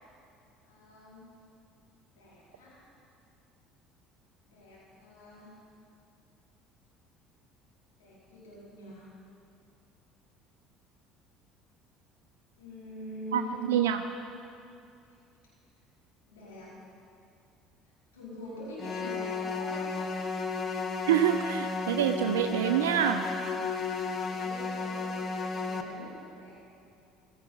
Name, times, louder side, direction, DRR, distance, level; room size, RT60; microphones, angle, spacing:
voice 1, 0.6-1.3 2.1-2.8 4.5-5.5 8.0-9.1 12.6-13.5 16.2-16.7 18.1-20.0 24.2-26.6, left 1 dB, 80° left, -8 dB, 4.9 m, -45 dB
voice 2, 13.7-14.0 21.1-23.3, right 10 dB, 80° right, 7 dB, 0.5 m, -26 dB
sound 1, 18.8-25.8, left 4 dB, 40° left, 1.4 m, -33 dB
16.5 x 14.5 x 5.6 m, 2.6 s
hypercardioid pair, 60°, 0 cm